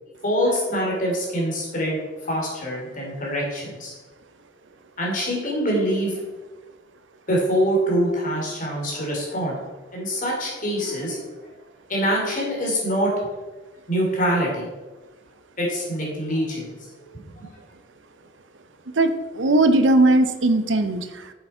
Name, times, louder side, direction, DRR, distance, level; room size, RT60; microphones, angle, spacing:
voice 1, 0.2-3.9 5.0-6.2 7.3-9.5 9.9-11.3 11.9-13.1 13.9-14.7 15.6-16.8 17.3-17.5, equal, 45° left, -2 dB, 3.0 m, -24 dB
voice 2, 19.0-21.3, right 2 dB, 75° right, 10 dB, 0.7 m, -19 dB
7.9 x 6.8 x 4.4 m, 1.2 s
head